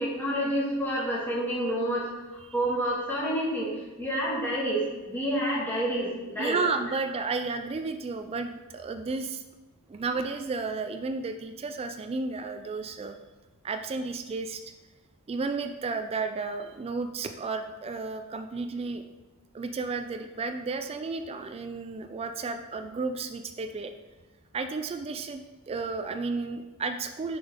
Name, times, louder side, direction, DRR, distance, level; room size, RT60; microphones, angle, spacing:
voice 1, 0.0-2.1 2.5-6.6, right 1 dB, 10° left, -7 dB, 1.9 m, -28 dB
voice 2, 6.4-9.4 9.9-13.2 13.6-14.6 15.3-19.0 19.5-23.9 24.5-25.4 25.7-27.4, right 4 dB, 25° right, 7 dB, 0.3 m, -32 dB
6.8 x 5.3 x 3.7 m, 1.2 s
head